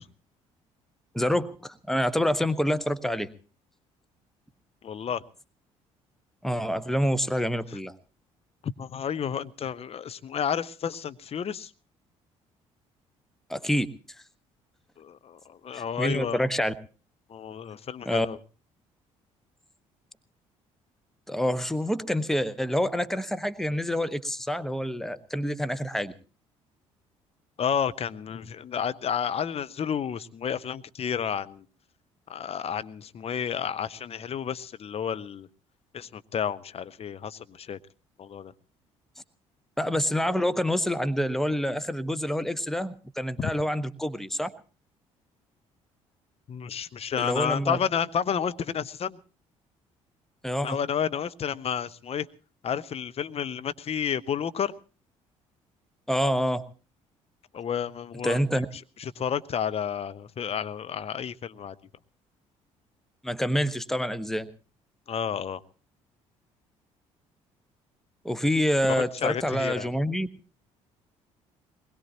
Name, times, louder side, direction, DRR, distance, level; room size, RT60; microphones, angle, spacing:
voice 1, 1.1-3.3 6.4-7.9 13.5-13.9 15.7-16.7 18.1-18.3 21.3-26.1 39.8-44.5 47.2-47.8 50.4-50.8 56.1-56.6 58.2-58.7 63.2-64.5 68.2-70.3, equal, ahead, 1.2 m, -27 dB
voice 2, 4.8-5.2 8.6-11.7 15.0-16.5 17.3-18.4 27.6-31.6 32.3-35.5 35.9-37.8 38.2-38.5 43.4-43.5 46.5-49.2 50.6-52.3 52.6-54.7 57.5-58.4 59.0-61.8 65.1-65.6 69.0-69.9, left 8 dB, 35° left, 0.9 m, -31 dB
22.5 x 20.5 x 2.9 m
figure-of-eight pair, 50°, 17 cm